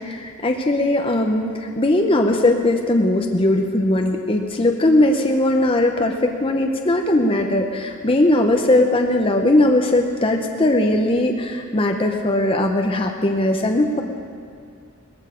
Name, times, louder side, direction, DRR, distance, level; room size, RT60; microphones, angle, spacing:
voice 1, 0.0-14.0, left 1 dB, 25° left, 3 dB, 0.8 m, -19 dB
18.5 x 14.5 x 5.1 m, 2.4 s
head